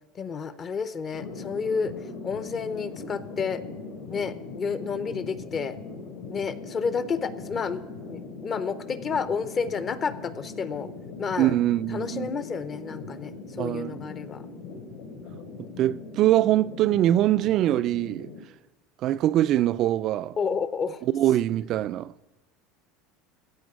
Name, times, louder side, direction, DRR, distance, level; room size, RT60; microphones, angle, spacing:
voice 1, 0.2-1.9 2.2-3.6 4.1-5.8 6.3-7.8 8.1-10.9 11.2-11.5 11.9-14.4 20.4-21.0, left 5 dB, 25° left, 0.6 m, -30 dB
sound 1, 1.1-18.4, left 4 dB, 75° left, 3.1 m, -40 dB
voice 2, 11.4-12.4 13.6-14.0 15.8-18.3 19.0-20.3 21.1-22.1, right 13 dB, 45° right, 0.3 m, -23 dB
14.5 x 5.1 x 9.4 m
cardioid pair, 155°, 0 cm